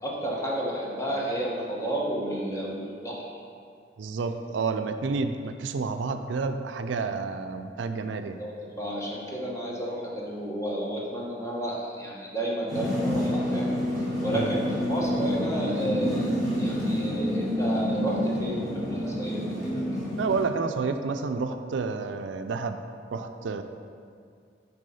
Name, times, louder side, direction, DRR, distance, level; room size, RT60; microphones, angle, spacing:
voice 1, 0.0-3.3 8.4-8.5 8.8-13.7 14.2-20.0, right 1 dB, 15° left, -4 dB, 1.1 m, -31 dB
voice 2, 4.0-8.4 14.3-14.5 20.2-22.8 23.1-23.6, right 4 dB, 80° right, 8 dB, 0.4 m, -30 dB
sound 1, 12.7-20.4, equal, ahead, 1.8 m, -28 dB
6.3 x 4.6 x 5.5 m, 2.3 s
head